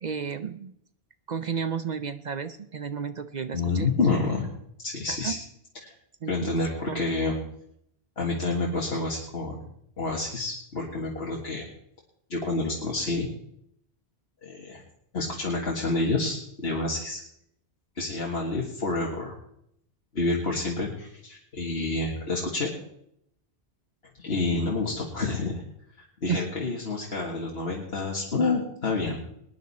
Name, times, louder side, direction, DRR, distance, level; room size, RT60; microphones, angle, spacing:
voice 1, 0.0-0.7 1.3-3.9 5.1-5.4 6.2-6.5 6.9-7.0 26.3-26.5, right 6 dB, 50° right, 11 dB, 0.7 m, -32 dB
voice 2, 3.5-4.5 4.8-5.4 5.8-5.9 6.3-7.4 8.2-9.6 10.0-11.7 12.3-13.3 14.4-14.8 15.1-17.2 18.0-19.4 20.1-22.7 24.2-25.6 26.2-29.2, left 3 dB, 75° left, -2 dB, 2.1 m, -28 dB
21.0 x 10.0 x 4.3 m, 0.74 s
omnidirectional pair, 1.1 m